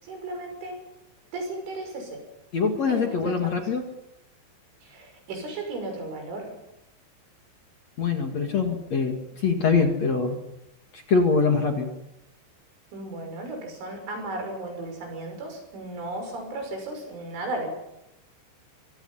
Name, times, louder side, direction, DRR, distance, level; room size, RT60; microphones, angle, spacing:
voice 1, 0.0-0.8 1.3-2.2 2.9-3.4 4.8-6.5 12.9-17.7, right 2 dB, 85° right, 4 dB, 8.7 m, -35 dB
voice 2, 2.5-3.8 8.0-10.4 10.9-11.9, left 4 dB, 45° left, 4 dB, 2.7 m, -23 dB
25.0 x 24.5 x 5.8 m, 0.89 s
omnidirectional pair, 5.4 m